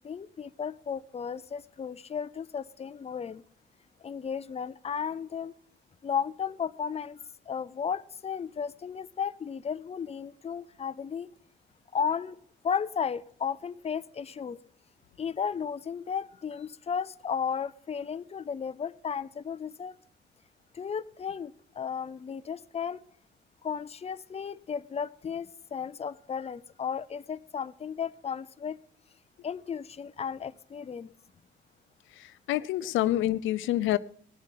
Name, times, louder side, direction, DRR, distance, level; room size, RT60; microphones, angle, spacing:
voice 1, 0.0-3.4 4.0-5.5 6.0-7.2 7.5-11.3 11.9-14.6 15.2-20.0 20.7-23.0 23.6-28.8 29.4-31.1, left 7 dB, 30° left, 14 dB, 0.6 m, -34 dB
voice 2, 32.1-34.0, left 14 dB, 80° left, 15 dB, 0.4 m, -27 dB
18.5 x 7.5 x 5.7 m, 0.64 s
cardioid pair, 90°, 20 cm